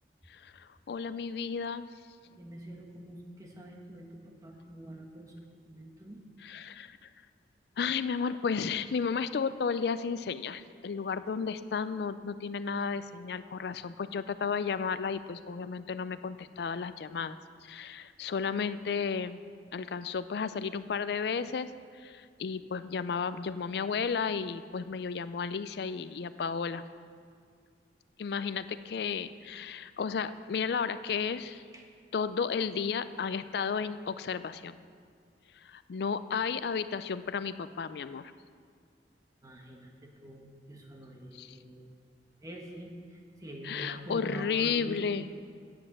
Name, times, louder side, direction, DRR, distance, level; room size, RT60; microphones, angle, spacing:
voice 1, 0.3-1.9 6.4-7.1 7.8-19.4 19.7-21.7 22.0-26.8 28.2-31.6 32.1-34.8 35.6-38.3 41.4-41.6 43.6-45.3, left 6 dB, 60° left, 13 dB, 0.4 m, -33 dB
voice 2, 2.4-5.3 5.6-6.2 31.7-31.9 39.4-41.9 42.4-45.0, right 1 dB, 20° right, 1 dB, 1.2 m, -46 dB
8.8 x 7.5 x 7.1 m, 2.1 s
head